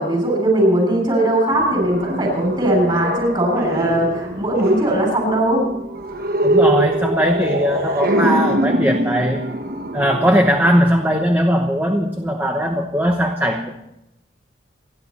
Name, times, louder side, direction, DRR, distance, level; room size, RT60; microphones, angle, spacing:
voice 1, 0.0-5.7, right 1 dB, 25° right, 1 dB, 6.7 m, -19 dB
sound 1, 1.5-11.3, right 1 dB, 55° right, 1.2 m, -23 dB
voice 2, 6.4-9.4 9.9-13.7, equal, 10° right, 3 dB, 1.0 m, -19 dB
29.0 x 11.0 x 4.2 m, 0.87 s
head